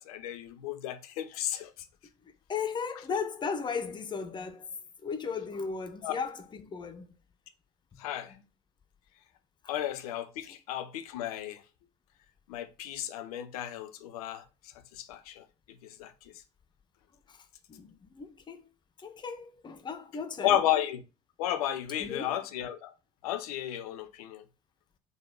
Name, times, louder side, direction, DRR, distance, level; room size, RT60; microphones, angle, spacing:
voice 1, 0.0-1.7 6.0-6.1 8.0-8.3 9.7-11.6 12.5-14.4 14.9-15.4 15.8-16.1 20.4-21.0 21.4-22.9 23.2-24.4, left 11 dB, 65° left, 0.6 m, -33 dB
voice 2, 2.2-7.2 7.9-8.4 9.6-9.7 17.3-18.7 19.0-20.6 22.0-22.4, left 5 dB, 20° left, 0.6 m, -37 dB
3.9 x 2.2 x 4.5 m
figure-of-eight pair, 65°, 20 cm